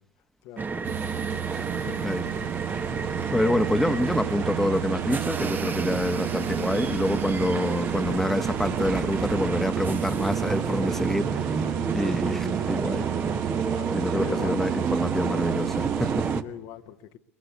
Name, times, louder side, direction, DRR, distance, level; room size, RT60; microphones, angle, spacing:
voice 1, 0.4-0.9 1.8-2.5 3.4-3.6 13.7-14.9 16.4-17.2, left 12 dB, 60° left, 8 dB, 1.2 m, -41 dB
sound 1, 0.6-16.4, right 4 dB, 25° right, 1.0 m, -30 dB
sound 2, 0.8-16.4, right 15 dB, 60° right, 0.9 m, -32 dB
voice 2, 3.3-13.1 13.9-16.4, left 1 dB, 5° left, 9 dB, 1.2 m, -27 dB
22.5 x 20.5 x 8.3 m, 0.75 s
hypercardioid pair, 70°, 8 cm